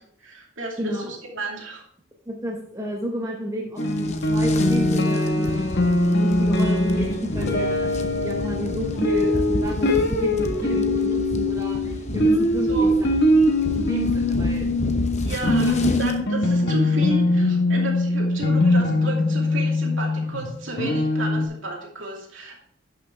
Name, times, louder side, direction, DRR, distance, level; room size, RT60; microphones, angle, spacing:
voice 1, 0.0-1.8 12.7-12.9 15.2-22.5, right 2 dB, 70° right, -1 dB, 2.6 m, -32 dB
voice 2, 0.8-1.1 2.3-12.9 13.4-13.5 13.7-14.7 15.6-15.7, equal, 15° right, -1 dB, 1.1 m, -32 dB
sound 1, 3.8-21.5, left 1 dB, 55° left, 1.4 m, -22 dB
sound 2, 3.8-16.2, left 1 dB, 35° left, 0.8 m, -32 dB
11.0 x 6.4 x 3.5 m, 0.69 s
head